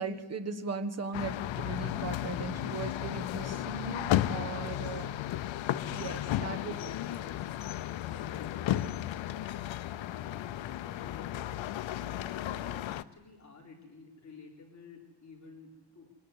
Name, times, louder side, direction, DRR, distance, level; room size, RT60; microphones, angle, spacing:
voice 1, 0.0-5.0 5.9-6.7, right 4 dB, 35° right, 7 dB, 1.4 m, -38 dB
sound 1, 1.1-13.0, left 12 dB, 75° left, 0.8 m, -34 dB
voice 2, 4.5-5.2 6.3-11.5 11.9-16.1, left 4 dB, 35° left, -1 dB, 4.2 m, -52 dB
25.0 x 20.0 x 8.3 m, 1.1 s
wide cardioid pair, 150°, 46 cm